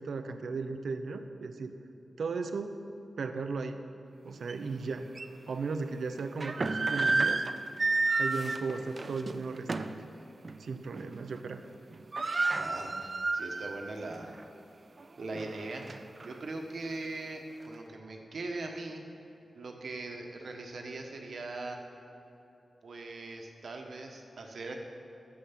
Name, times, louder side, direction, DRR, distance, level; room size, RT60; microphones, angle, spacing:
voice 1, 0.0-1.8 2.2-2.8 3.2-3.8 4.2-5.1 5.5-7.4 8.2-9.9 10.6-11.6, right 4 dB, 85° right, 8 dB, 0.6 m, -36 dB
sound 1, 4.5-4.6 5.2-5.3 6.2-10.0 10.4-10.6 11.0-11.4 11.6-11.7 11.9-13.9 14.3-14.4 15.0-16.3, right 3 dB, 40° right, 0.4 m, -31 dB
voice 2, 12.5-14.4 15.2-15.9 16.2-19.0 19.5-21.8 22.8-24.8, right 2 dB, 70° right, 3 dB, 1.1 m, -40 dB
10.5 x 7.5 x 5.9 m, 3.0 s
wide cardioid pair, 120°, 0 cm